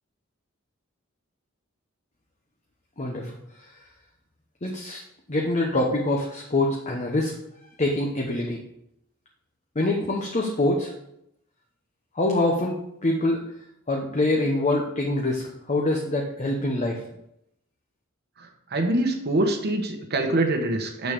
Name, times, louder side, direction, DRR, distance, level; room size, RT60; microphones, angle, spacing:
voice 1, 3.0-3.3 4.6-5.0 5.3-7.3 7.8-8.6 9.7-10.9 12.1-13.4 13.9-17.0, left 2 dB, 35° left, 0 dB, 1.0 m, -25 dB
voice 2, 18.4-21.1, right 1 dB, 55° right, 3 dB, 1.2 m, -25 dB
6.8 x 6.5 x 6.7 m, 0.79 s
head